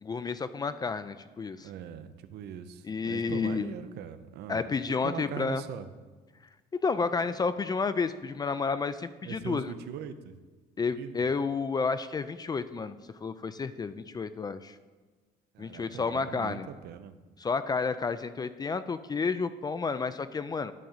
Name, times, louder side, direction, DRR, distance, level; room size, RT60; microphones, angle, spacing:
voice 1, 0.0-1.7 2.8-3.7 4.5-5.6 6.7-9.7 10.8-14.8 15.6-16.7 17.4-20.7, left 4 dB, 25° left, 12 dB, 0.4 m, -31 dB
voice 2, 1.6-5.9 9.2-10.4 10.9-11.1 15.5-17.2, right 8 dB, 75° right, 11 dB, 0.7 m, -41 dB
10.5 x 3.8 x 7.1 m, 1.3 s
cardioid pair, 110°, 17 cm